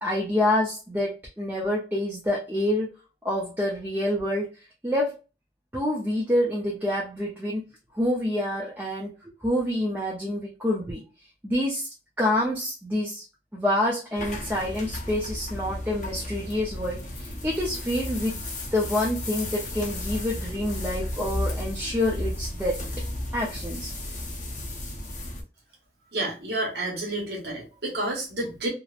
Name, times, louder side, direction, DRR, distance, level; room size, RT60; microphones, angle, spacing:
voice 1, 0.0-2.9 3.2-4.5 4.8-5.1 5.7-7.6 8.0-9.1 9.4-11.0 11.4-11.9 12.2-13.2 13.5-18.4 18.7-22.8 23.3-23.9, left 1 dB, 10° right, -4 dB, 0.5 m, -27 dB
sound 1, 14.2-25.4, left 1 dB, 45° left, 0.6 m, -34 dB
voice 2, 26.1-28.7, right 1 dB, 70° right, -1 dB, 1.0 m, -30 dB
2.9 x 2.0 x 2.3 m, 0.31 s
head